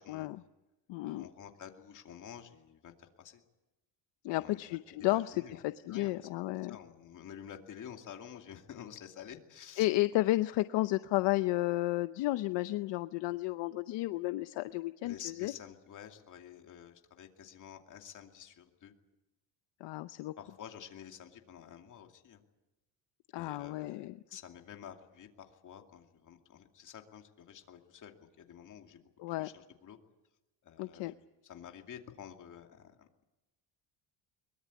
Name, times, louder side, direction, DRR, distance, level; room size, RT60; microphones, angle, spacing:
voice 1, 0.1-0.4 0.9-1.3 4.2-6.8 9.8-15.5 19.8-20.3 23.3-24.2 29.2-29.5 30.8-31.1, left 18 dB, 70° left, 12 dB, 0.7 m, -32 dB
voice 2, 1.0-3.4 4.3-4.6 5.0-5.6 5.9-6.3 6.7-9.9 15.0-18.9 20.4-22.4 23.3-29.0 29.4-30.0 30.6-33.3, left 9 dB, 40° left, 4 dB, 2.6 m, -50 dB
23.0 x 21.5 x 8.5 m, 1.0 s
cardioid pair, 160°, 45 cm